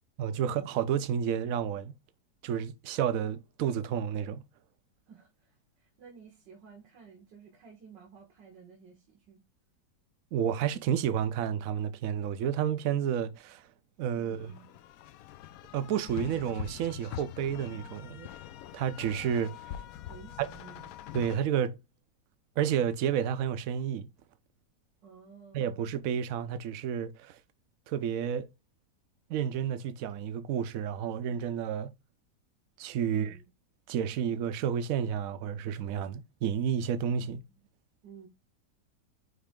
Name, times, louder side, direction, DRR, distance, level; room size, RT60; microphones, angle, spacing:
voice 1, 0.2-1.9 2.4-4.4 10.3-13.6 14.0-14.5 15.7-18.3 18.7-19.8 20.4-20.5 21.1-21.7 22.6-24.1 25.5-27.4 27.9-28.5 29.3-31.9 32.8-33.3 33.9-37.4, right 8 dB, 65° right, 0.9 m, -31 dB
voice 2, 5.1-9.4 14.1-14.8 20.1-21.0 25.0-25.7 33.1-33.4 38.0-38.3, right 6 dB, 90° right, 2.2 m, -53 dB
sound 1, 14.4-21.4, left 12 dB, 70° left, 0.8 m, -43 dB
9.6 x 3.2 x 3.6 m
omnidirectional pair, 1.9 m